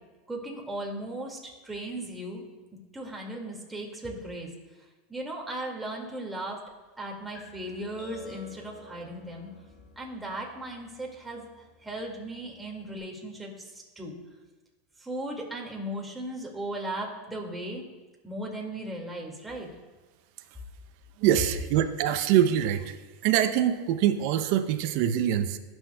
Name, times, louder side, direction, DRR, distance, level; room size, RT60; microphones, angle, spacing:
voice 1, 0.3-2.4 2.9-4.5 5.1-6.6 7.0-9.5 10.0-14.1 15.0-17.8 18.2-19.7, right 1 dB, 10° right, -1 dB, 2.1 m, -37 dB
sound 1, 7.3-13.0, left 2 dB, 35° left, 2.7 m, -51 dB
voice 2, 21.2-23.0 23.2-25.6, right 10 dB, 60° right, 8 dB, 0.6 m, -24 dB
18.5 x 6.3 x 2.3 m, 1.2 s
hypercardioid pair, 95°, 0 cm